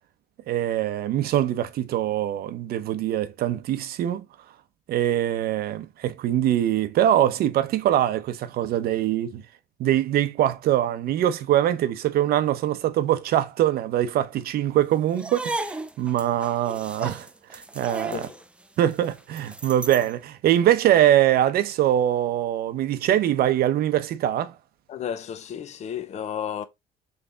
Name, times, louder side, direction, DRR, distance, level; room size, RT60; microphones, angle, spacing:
voice 1, 0.5-4.3 4.9-9.4 9.8-18.3 18.8-24.5, right 12 dB, 65° right, 0.6 m, -23 dB
sound 1, 15.1-20.1, right 2 dB, 5° right, 0.3 m, -35 dB
voice 2, 24.9-26.6, left 8 dB, 40° left, 0.6 m, -32 dB
3.4 x 3.2 x 3.7 m
cardioid pair, 110°, 17 cm